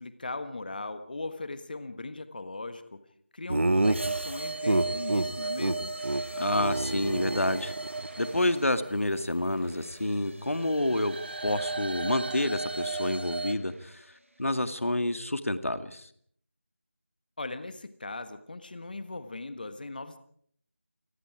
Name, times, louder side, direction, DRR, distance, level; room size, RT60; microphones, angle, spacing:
voice 1, 0.0-3.0 3.3-6.0 17.4-20.2, left 2 dB, 40° left, 11 dB, 1.5 m, -39 dB
Laughter, 3.5-5.3 5.6-5.8 6.0-6.2 6.5-8.1, right 2 dB, 65° right, 1.6 m, -28 dB
sound 1, 3.6-14.9, right 1 dB, 85° right, 6.2 m, -53 dB
sound 2, 3.8-9.5 10.4-13.5, right 3 dB, 50° right, 1.6 m, -36 dB
voice 2, 6.4-7.7 8.2-14.0 14.4-16.1, left 1 dB, 85° left, 10 dB, 2.2 m, -28 dB
28.5 x 21.0 x 4.9 m, 0.62 s
figure-of-eight pair, 175°, 7 cm